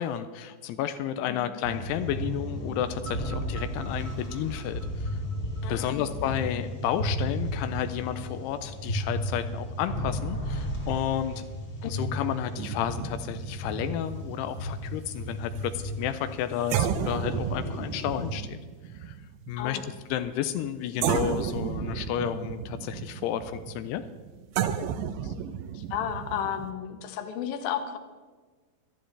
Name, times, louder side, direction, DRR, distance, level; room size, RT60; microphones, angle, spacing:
voice 1, 0.0-5.1 5.7-11.4 11.8-18.6 19.0-19.2 19.5-19.8 20.1-24.0, left 10 dB, 90° left, 10 dB, 2.3 m, -31 dB
voice 2, 1.3-1.6 5.6-6.1 11.8-11.9 19.6-19.8 25.2-25.3 25.7-28.0, left 9 dB, 70° left, 7 dB, 2.3 m, -33 dB
sound 1, 1.6-18.4, equal, 30° left, 2.1 m, -34 dB
sound 2, 3.1-6.1, right 3 dB, 45° right, 1.0 m, -45 dB
sound 3, 12.6-15.8 16.2-16.3 16.7-20.7 21.0-26.7, right 9 dB, 80° right, 2.9 m, -33 dB
21.5 x 12.5 x 3.3 m, 1.4 s
omnidirectional pair, 5.3 m